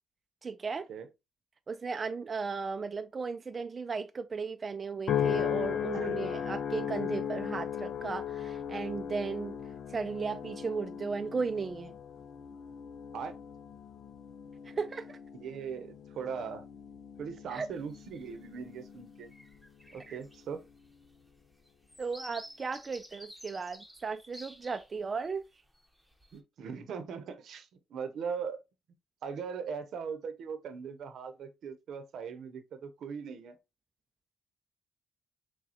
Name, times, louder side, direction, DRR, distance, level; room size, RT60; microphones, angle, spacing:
voice 1, 0.4-0.9 1.7-9.6 9.9-11.9 14.8-15.2 17.5-17.7 20.1-20.2 22.0-25.4, right 5 dB, 35° right, 0.4 m, -35 dB
sound 1, 5.1-19.6 20.1-20.5, left 9 dB, 65° left, 0.4 m, -37 dB
voice 2, 5.9-6.3 13.1-13.4 15.3-16.7 17.2-19.3 19.9-20.6 26.3-28.6 29.2-33.6, right 6 dB, 70° right, 0.8 m, -40 dB
sound 2, 17.7-18.3 18.8-19.0 19.2-25.3 25.7-26.4, equal, ahead, 1.1 m, -52 dB
6.3 x 2.3 x 2.9 m
cardioid pair, 90°, 0 cm